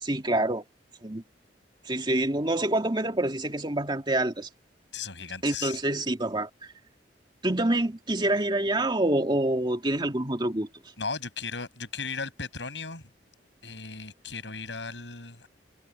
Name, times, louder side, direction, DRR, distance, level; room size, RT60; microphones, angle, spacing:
voice 1, 0.0-0.6 1.0-1.2 1.9-4.5 5.4-6.7 7.4-10.7, right 1 dB, 25° right, 2.7 m, -26 dB
voice 2, 4.9-5.8 11.0-13.1 13.6-15.5, left 4 dB, 80° left, 7.0 m, -36 dB
head